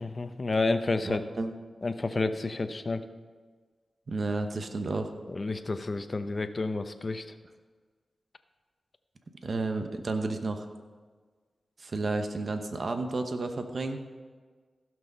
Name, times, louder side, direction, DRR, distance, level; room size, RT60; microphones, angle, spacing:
voice 1, 0.0-1.2 1.8-3.0 5.3-7.3, left 3 dB, 50° left, 9 dB, 0.8 m, -30 dB
voice 2, 1.0-1.5 4.1-5.1 9.4-10.7 11.8-14.0, right 3 dB, 60° right, 6 dB, 1.0 m, -31 dB
15.5 x 6.3 x 5.5 m, 1.5 s
cardioid pair, 50°, 0 cm